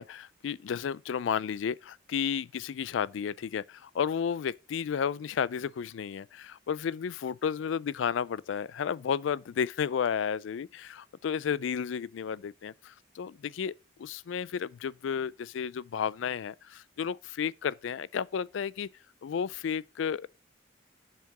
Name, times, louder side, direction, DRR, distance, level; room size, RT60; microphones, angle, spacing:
voice 1, 0.0-13.7 14.0-18.9 19.2-20.3, left 7 dB, 80° left, 0.3 m, -32 dB
7.5 x 5.8 x 4.0 m
head